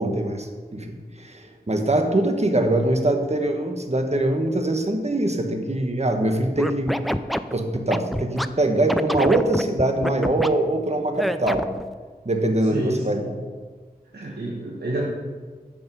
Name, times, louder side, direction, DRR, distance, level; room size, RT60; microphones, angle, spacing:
voice 1, 0.0-7.0 7.5-11.7 12.2-13.3, right 1 dB, 40° right, 4 dB, 1.3 m, -23 dB
Scratching (performance technique), 6.6-8.5 8.9-10.5 11.2-11.8, equal, ahead, 0.4 m, -25 dB
voice 2, 12.7-13.3 14.1-15.0, right 1 dB, 90° right, -5 dB, 1.5 m, -28 dB
14.0 x 5.3 x 5.5 m, 1.5 s
wide cardioid pair, 65°, 16 cm